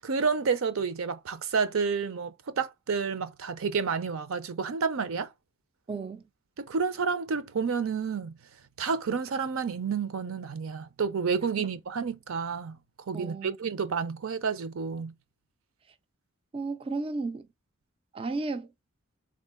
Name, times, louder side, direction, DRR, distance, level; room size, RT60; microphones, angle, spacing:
voice 1, 0.0-5.3 6.6-8.4 8.8-12.8 13.1-15.1, right 5 dB, 75° right, 0.5 m, -30 dB
voice 2, 5.9-6.2 11.6-11.7 13.1-13.6 16.5-17.5 18.1-18.7, right 3 dB, 25° right, 0.3 m, -33 dB
3.6 x 2.4 x 3.6 m
head